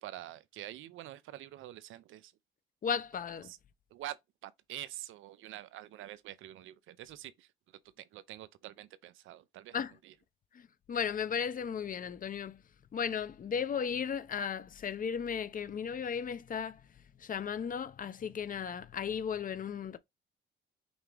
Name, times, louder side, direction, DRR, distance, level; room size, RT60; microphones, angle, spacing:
voice 1, 0.0-2.3 3.4-3.6 3.9-4.2 4.4-7.5 8.0-10.1, right 14 dB, 85° right, 0.6 m, -46 dB
voice 2, 2.8-3.5 9.7-9.9 10.5-12.6 12.9-16.8 17.2-20.0, left 7 dB, 45° left, 0.7 m, -35 dB
5.3 x 3.0 x 3.3 m
cardioid pair, 90°, 20 cm